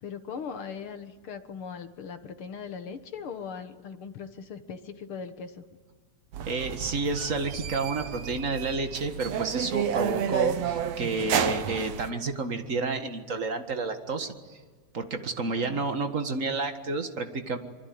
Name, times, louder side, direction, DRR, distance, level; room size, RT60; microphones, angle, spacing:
voice 1, 0.0-5.7 15.4-15.9, left 6 dB, 55° left, 9 dB, 1.9 m, -39 dB
sound 1, 6.3-12.1, right 8 dB, 65° right, 2.2 m, -31 dB
voice 2, 6.5-14.6 14.9-17.6, right 3 dB, 35° right, 7 dB, 1.6 m, -30 dB
25.5 x 24.5 x 9.6 m, 1.4 s
omnidirectional pair, 3.4 m